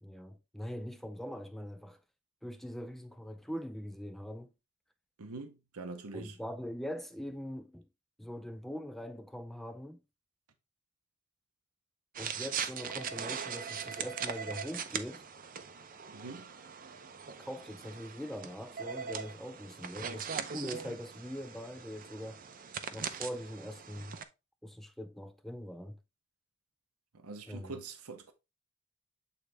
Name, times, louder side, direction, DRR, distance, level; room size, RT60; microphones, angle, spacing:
voice 1, 0.0-2.0 2.4-4.5 6.1-7.9 8.2-10.0 12.2-15.3 17.4-22.5 22.9-24.2 24.6-26.0 27.5-27.8, equal, ahead, 0.3 m, -42 dB
voice 2, 5.2-6.4 16.1-16.5 27.1-28.3, right 3 dB, 85° right, 0.9 m, -44 dB
sound 1, 12.1-24.2, right 7 dB, 40° right, 0.6 m, -41 dB
8.4 x 3.9 x 3.3 m
head